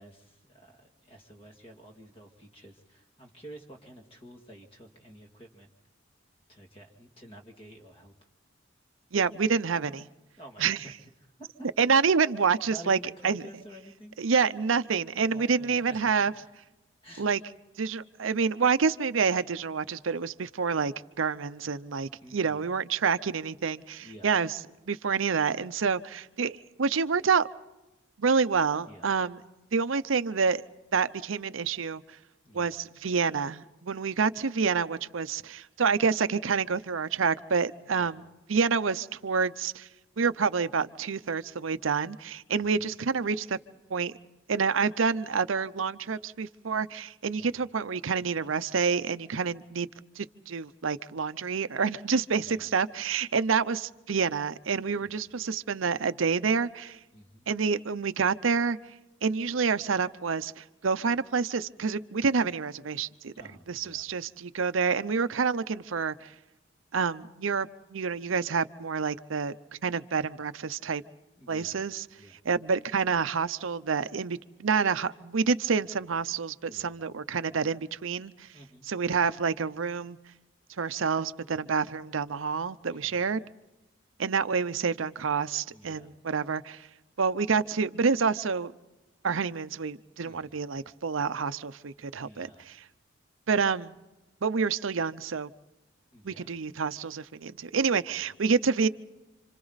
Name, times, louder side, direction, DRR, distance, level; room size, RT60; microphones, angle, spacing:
voice 1, 0.0-5.7 6.5-8.1 10.4-10.9 11.6-11.7 12.6-14.2 15.3-16.3 17.0-17.4 22.2-22.7 24.0-24.3 28.8-29.1 32.4-32.8 37.9-38.1 42.5-42.9 47.3-47.6 52.4-52.7 55.0-55.3 57.1-57.5 63.3-64.1 71.4-71.9 72.2-72.4 76.6-76.9 78.5-78.9 82.9-83.3 85.7-86.1 90.2-90.6 92.2-92.6 96.1-96.5, right 1 dB, 30° left, 2.4 m, -50 dB
voice 2, 9.1-10.1 10.6-10.8 11.8-13.0 13.2-13.4 14.2-16.3 17.2-17.4 17.8-24.6 24.9-27.5 28.2-29.4 29.7-30.6 30.9-32.0 32.5-38.2 38.5-39.9 40.2-43.6 43.9-44.1 44.5-49.9 50.2-57.0 57.5-58.8 59.2-63.3 63.7-66.3 66.9-69.6 69.8-71.0 71.5-72.0 72.4-78.5 78.9-80.2 80.8-83.4 84.2-86.9 87.2-88.7 89.2-92.7 93.5-93.9 94.4-95.5 96.2-98.9, right 5 dB, 85° right, 0.7 m, -28 dB
29.0 x 26.5 x 4.1 m
head